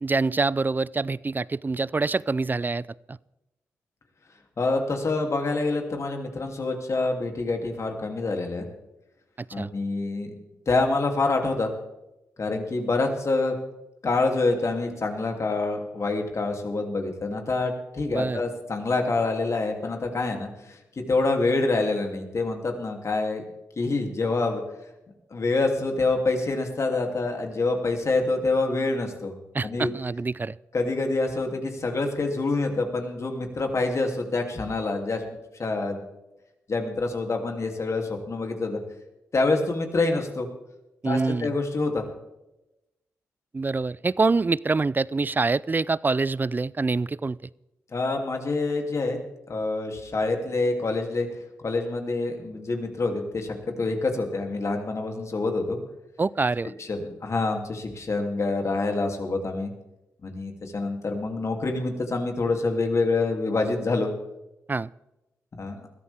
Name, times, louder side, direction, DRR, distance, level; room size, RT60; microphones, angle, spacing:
voice 1, 0.0-3.2 9.6-9.7 18.1-18.4 29.5-30.6 41.0-41.5 43.5-47.5 56.2-56.7 64.7-64.9, right 3 dB, 30° right, 22 dB, 0.4 m, -25 dB
voice 2, 4.6-8.6 9.5-10.3 10.7-11.7 12.4-13.5 14.0-23.4 23.8-24.6 25.3-29.3 29.6-29.9 30.7-35.2 35.6-36.0 36.7-38.8 39.3-40.5 41.0-42.0 47.9-49.2 49.5-51.3 51.6-55.8 56.8-59.7 60.2-64.1 65.6-65.8, left 3 dB, 50° left, 3 dB, 3.0 m, -26 dB
20.5 x 14.0 x 3.6 m, 0.96 s
supercardioid pair, 45°, 7 cm